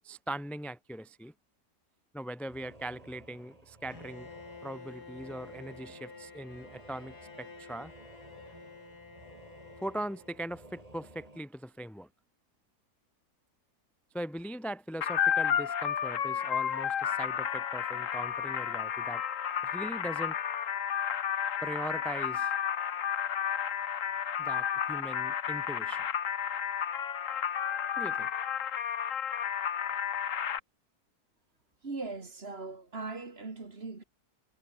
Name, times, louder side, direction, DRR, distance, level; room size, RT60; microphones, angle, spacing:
voice 1, 0.0-1.3 2.1-4.3 4.6-7.9 9.8-12.1 14.1-19.2 19.6-20.4 21.6-22.5 24.4-26.0 28.0-28.3, right 1 dB, ahead, 1.0 m, -40 dB
sound 1, 2.5-11.4, right 1 dB, 20° right, 3.9 m, -55 dB
Bowed string instrument, 3.9-10.8, left 4 dB, 80° left, 4.1 m, -50 dB
sound 2, 15.0-30.6, left 8 dB, 55° left, 1.4 m, -32 dB
voice 2, 31.8-34.0, right 3 dB, 40° right, 2.4 m, -39 dB
omnidirectional pair, 1.7 m